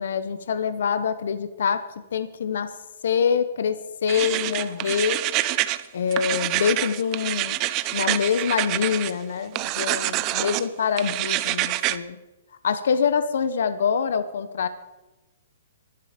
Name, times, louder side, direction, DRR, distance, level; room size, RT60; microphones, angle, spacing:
voice 1, 0.0-1.8 2.1-2.7 3.0-5.2 5.9-7.6 7.9-12.2 12.6-14.7, left 7 dB, 70° left, 12 dB, 1.1 m, -25 dB
sound 1, 4.1-5.8 6.1-9.1 9.5-10.6 11.0-12.0, right 17 dB, 30° right, 0.7 m, -26 dB
23.0 x 11.5 x 5.2 m, 1.1 s
hypercardioid pair, 150°, 0 cm